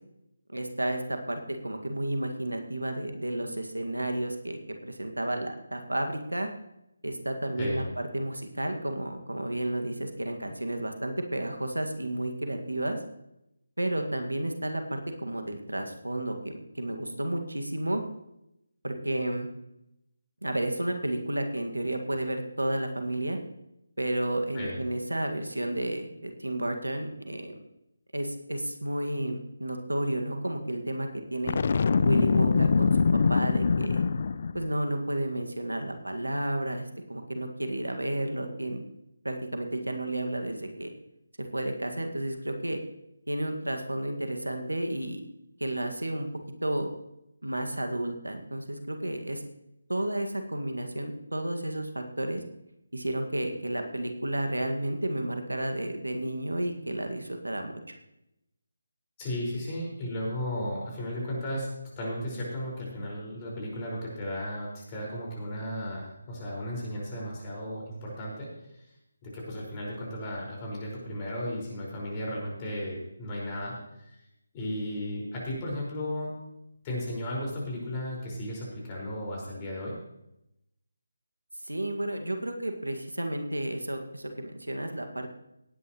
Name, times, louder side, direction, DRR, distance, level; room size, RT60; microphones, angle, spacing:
voice 1, 0.5-6.5 7.0-13.0 13.8-18.0 18.8-19.5 20.4-23.4 24.0-27.6 28.1-31.6 32.0-33.0 33.3-34.0 34.5-38.8 39.2-40.9 41.4-42.8 43.3-45.2 45.6-46.3 46.6-46.9 47.4-49.4 49.9-52.4 52.9-57.9 81.6-85.3, right 1 dB, 90° right, 5 dB, 1.9 m, -32 dB
voice 2, 7.6-7.9 24.5-24.8 59.2-68.5 68.8-68.9 69.2-73.8 74.1-74.2 74.5-76.3 76.8-80.0, left 1 dB, 25° left, -3 dB, 5.0 m, -35 dB
Boom, 31.5-34.7, left 5 dB, 45° left, 0.5 m, -23 dB
18.0 x 9.8 x 3.1 m, 0.83 s
figure-of-eight pair, 155°, 0 cm